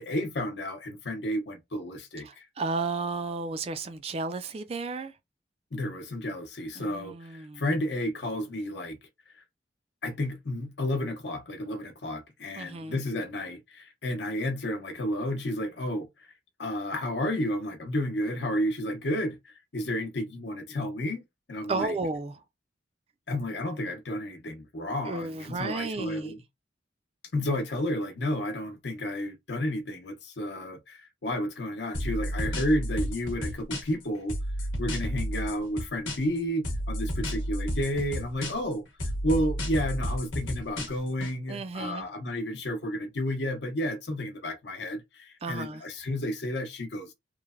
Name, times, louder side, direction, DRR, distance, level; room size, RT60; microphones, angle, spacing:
voice 1, 0.0-2.5 5.7-9.0 10.0-16.1 16.6-21.2 21.5-21.9 23.3-26.4 27.3-34.3 34.8-38.8 39.2-47.1, left 1 dB, 65° left, 0.8 m, -31 dB
voice 2, 2.2-5.1 6.8-7.6 12.6-13.0 21.7-22.4 25.1-26.3 41.5-42.1 45.4-45.8, right 3 dB, 30° right, 0.3 m, -33 dB
sound 1, 31.9-34.0 34.3-36.4 36.6-38.7 39.0-41.3, equal, 90° left, 1.0 m, -31 dB
3.1 x 2.1 x 2.3 m
head